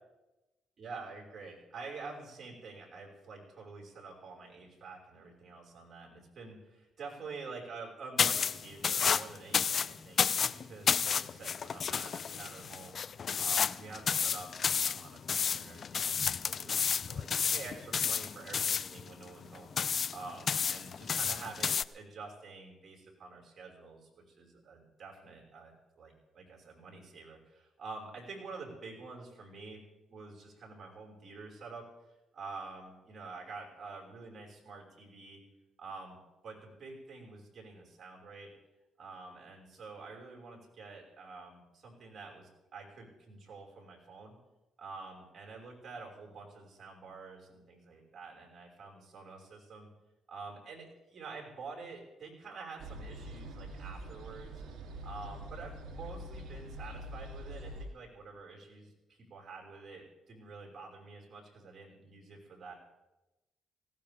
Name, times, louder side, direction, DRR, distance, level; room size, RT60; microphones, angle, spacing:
voice 1, 0.8-13.0 13.4-19.7 20.1-29.8 30.1-31.8 32.3-35.4 35.8-36.2 36.4-38.5 39.0-44.4 44.8-49.9 50.3-54.6 55.0-62.7, right 4 dB, 50° right, -1 dB, 5.4 m, -48 dB
sound 1, 8.2-21.8, left 6 dB, 50° left, 0.4 m, -31 dB
sound 2, 52.8-57.9, right 1 dB, 80° right, 2.9 m, -44 dB
18.5 x 16.5 x 3.6 m, 1.0 s
cardioid pair, 90°, 0 cm